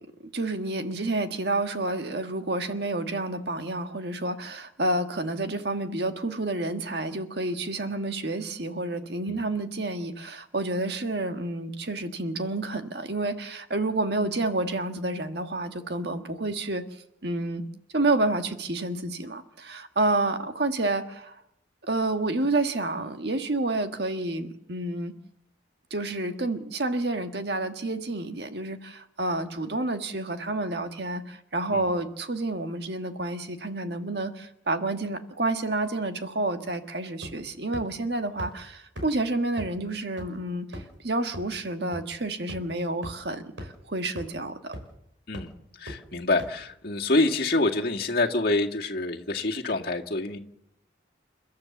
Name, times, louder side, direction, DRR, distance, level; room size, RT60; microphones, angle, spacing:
voice 1, 0.3-16.8 17.2-17.6 17.9-21.3 21.8-25.2 25.9-44.7, right 2 dB, 60° right, 7 dB, 1.6 m, -29 dB
sound 1, 37.2-37.5 37.7-37.8 38.4-38.5 39.0-39.1 39.6-39.7 40.2-40.3 40.7-41.0 41.3-41.4 41.9-42.0 42.5-42.6 43.0-43.1 43.6-43.7 44.2-44.3 44.7-45.0 45.3-45.4 45.9-46.0 46.4-46.5, equal, 85° right, 5.7 m, -37 dB
voice 2, 45.3-50.4, left 2 dB, 50° left, 0 dB, 2.0 m, -27 dB
30.0 x 13.0 x 7.2 m, 0.80 s
head